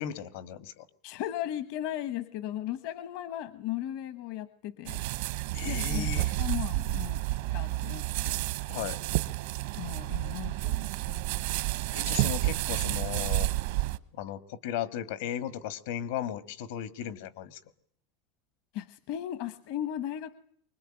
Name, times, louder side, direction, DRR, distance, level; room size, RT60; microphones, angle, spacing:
voice 1, 0.0-0.9 5.5-6.3 8.7-9.0 11.9-13.5 14.1-17.6, left 10 dB, 75° left, 14 dB, 1.8 m, -36 dB
voice 2, 1.0-5.0 5.6-6.1 6.4-7.2 7.5-8.4 9.7-11.2 18.7-20.3, left 12 dB, 55° left, 14 dB, 1.0 m, -36 dB
sound 1, 4.9-14.0, right 17 dB, 70° right, 1.0 m, -30 dB
24.5 x 21.0 x 8.9 m, 0.65 s
cardioid pair, 175°, 0 cm